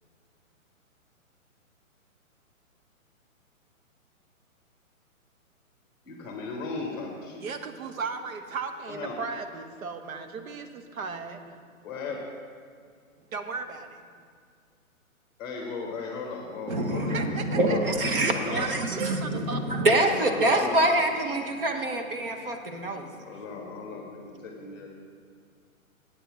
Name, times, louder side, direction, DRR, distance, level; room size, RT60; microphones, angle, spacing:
voice 1, 6.0-7.5 8.9-9.2 11.8-12.3 15.4-17.2 17.5-18.7 20.1-20.8 23.2-24.9, left 4 dB, 15° left, 0 dB, 1.1 m, -36 dB
voice 2, 7.4-11.7 13.3-14.0 16.7-17.8 18.2-19.9, right 4 dB, 70° right, 7 dB, 1.0 m, -36 dB
voice 3, 16.7-23.1, right 1 dB, 40° right, 4 dB, 0.9 m, -26 dB
8.3 x 8.0 x 6.0 m, 2.1 s
hypercardioid pair, 165°, 42 cm